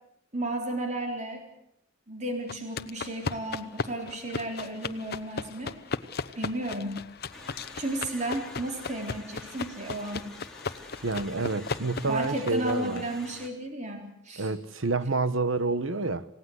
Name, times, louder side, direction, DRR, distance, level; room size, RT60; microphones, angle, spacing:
voice 1, 0.3-1.5 2.1-5.7 6.4-6.9 7.8-10.3 11.3-11.6 12.0-14.5, right 1 dB, 35° right, 4.0 m, -33 dB
sound 1, 2.5-13.0, left 4 dB, 50° left, 1.0 m, -37 dB
sound 2, 7.3-13.5, left 1 dB, 5° left, 2.9 m, -47 dB
voice 2, 11.0-13.0 14.4-16.2, right 3 dB, 75° right, 1.2 m, -28 dB
28.0 x 17.5 x 8.1 m
head